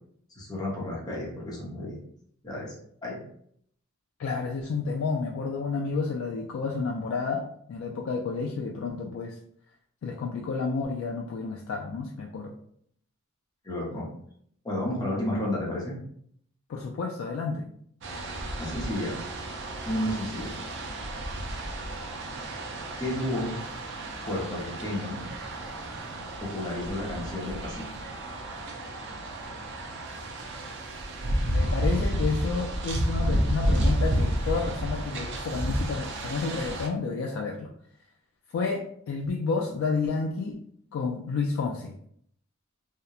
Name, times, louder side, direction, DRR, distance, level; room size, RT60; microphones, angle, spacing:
voice 1, 0.4-1.9 2.4-2.7 3.0-3.2 13.6-14.1 14.6-16.0 18.6-19.2 19.8-20.5 23.0-23.6 24.2-25.2 26.4-27.9, left 1 dB, 20° left, -4 dB, 0.7 m, -31 dB
voice 2, 4.2-9.4 10.0-12.5 16.7-17.7 31.4-37.7 38.5-40.6 40.9-41.9, left 4 dB, 65° left, 0 dB, 0.3 m, -30 dB
sound 1, 18.0-36.9, right 1 dB, 60° right, 0.4 m, -31 dB
2.8 x 2.0 x 2.3 m, 0.66 s
head